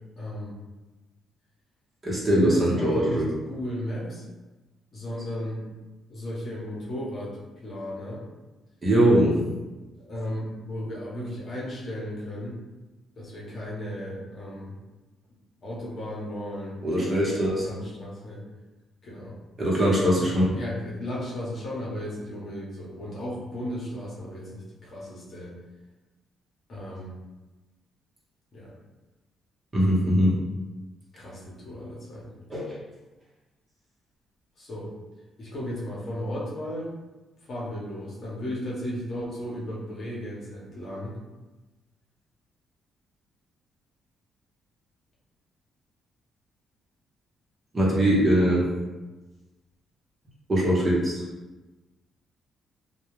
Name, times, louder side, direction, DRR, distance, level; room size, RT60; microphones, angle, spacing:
voice 1, 0.2-0.5 2.3-4.2 4.9-5.6 6.1-7.4 7.6-8.2 10.0-12.6 13.2-14.7 15.6-18.4 19.0-19.3 20.2-25.5 26.7-27.2 28.5-28.7 31.1-32.2 34.6-34.9 35.4-36.9 37.5-41.2, equal, 50° left, -5 dB, 0.9 m, -35 dB
voice 2, 2.0-3.3 8.8-9.4 16.8-17.8 19.6-20.6 29.7-30.4 32.5-32.7 47.7-48.6 50.5-51.2, equal, 30° right, -5 dB, 0.9 m, -21 dB
2.2 x 2.2 x 3.1 m, 1.1 s
cardioid pair, 90°, 0 cm